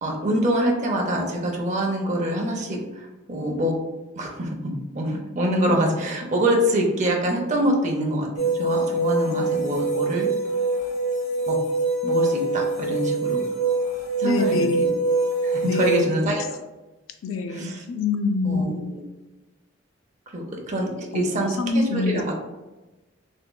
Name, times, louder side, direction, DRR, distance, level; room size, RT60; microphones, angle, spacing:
voice 1, 0.0-3.7 4.2-10.3 11.5-11.6 12.0-13.4 14.2-14.9 15.4-16.4 17.5-17.8 18.4-19.0 20.3-20.9 21.1-22.3, right 1 dB, 35° right, 0 dB, 0.5 m, -25 dB
sound 1, 8.4-16.0, right 3 dB, 50° left, 0.9 m, -24 dB
voice 2, 14.2-14.9 15.6-16.1 17.2-19.0 21.1-22.3, left 3 dB, 85° left, 7 dB, 0.4 m, -26 dB
3.5 x 2.9 x 2.2 m, 1.1 s
head